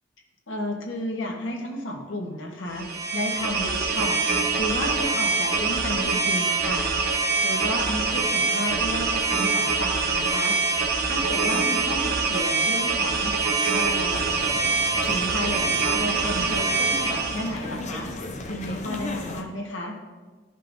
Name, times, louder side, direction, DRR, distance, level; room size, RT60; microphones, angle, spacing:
voice 1, 0.5-2.9 3.1-4.2 4.6-6.8 7.4-10.6 11.0-13.3 13.7-14.3 15.0-18.1 18.4-19.9, left 1 dB, 75° left, 0 dB, 1.3 m, -32 dB
sound 1, 2.7-17.5, right 4 dB, 50° right, 1.0 m, -24 dB
sound 2, 14.1-19.4, left 2 dB, 35° left, 0.6 m, -36 dB
11.5 x 5.4 x 2.6 m, 1.4 s
head